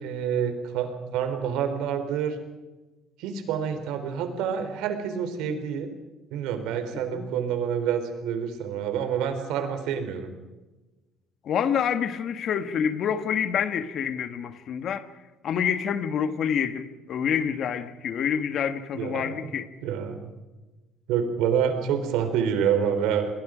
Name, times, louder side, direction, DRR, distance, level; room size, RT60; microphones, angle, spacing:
voice 1, 0.0-2.4 3.2-5.9 6.3-10.3 18.9-19.5 19.8-20.3 21.1-23.3, right 8 dB, 80° right, 8 dB, 3.8 m, -27 dB
voice 2, 11.4-15.0 15.4-19.7, left 8 dB, 45° left, 10 dB, 1.6 m, -27 dB
28.5 x 21.5 x 5.1 m, 1.1 s
cardioid pair, 145°, 0 cm